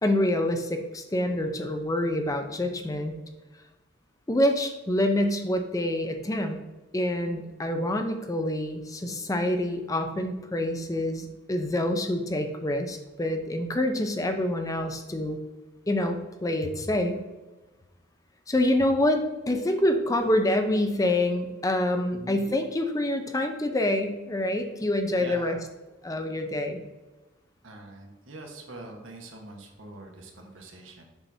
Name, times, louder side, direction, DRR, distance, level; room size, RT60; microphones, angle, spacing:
voice 1, 0.0-3.1 4.3-6.6 6.9-15.4 15.9-17.2 18.5-25.6 26.0-26.8, left 1 dB, 15° left, 6 dB, 0.5 m, -26 dB
voice 2, 22.1-22.5 25.2-25.6 27.6-31.0, right 1 dB, 85° right, 1 dB, 1.3 m, -43 dB
7.0 x 5.8 x 2.7 m, 1.1 s
head